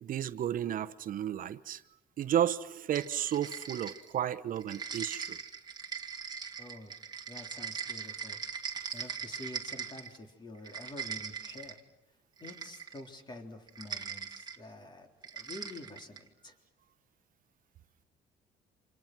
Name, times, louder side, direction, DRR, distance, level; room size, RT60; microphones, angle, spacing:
voice 1, 0.0-1.8 2.2-5.4, right 10 dB, 55° right, 1.0 m, -32 dB
sound 1, 2.9-4.2 4.6-10.2 10.5-11.8 12.4-13.1 13.7-14.6 15.2-16.3, right 6 dB, 25° right, 2.1 m, -41 dB
voice 2, 6.6-6.9 7.3-8.4 8.9-11.8 12.4-16.5, left 2 dB, 25° left, 3.7 m, -48 dB
29.0 x 27.0 x 6.1 m
cardioid pair, 110°, 17 cm